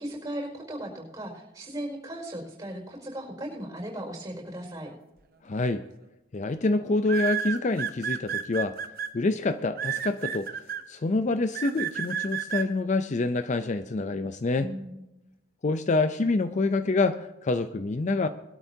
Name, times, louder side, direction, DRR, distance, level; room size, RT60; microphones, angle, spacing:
voice 1, 0.0-4.9 14.6-15.0, right 1 dB, 20° right, 0 dB, 5.2 m, -37 dB
voice 2, 5.4-5.8 6.3-8.8 9.1-10.5 10.9-14.7 15.6-18.3, left 3 dB, 40° left, 10 dB, 0.5 m, -26 dB
sound 1, 5.6-5.9 7.1-9.1 9.8-10.8 11.5-12.6, right 8 dB, 50° right, 0.9 m, -31 dB
22.0 x 12.5 x 2.8 m, 0.95 s
head